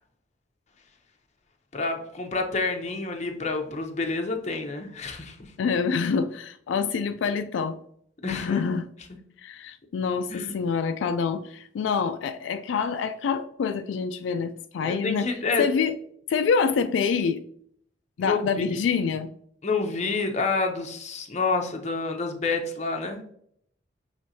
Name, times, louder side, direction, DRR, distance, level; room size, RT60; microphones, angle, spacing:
voice 1, 1.7-5.5 8.2-8.6 10.3-10.5 14.8-15.7 18.2-18.4 18.7-18.8 19.6-23.2, left 3 dB, 40° left, 0.7 m, -28 dB
voice 2, 5.6-7.8 8.3-8.9 9.4-15.3 15.6-15.9 16.3-17.4 18.2-19.3, left 5 dB, 80° left, 0.3 m, -26 dB
6.2 x 3.2 x 2.7 m
head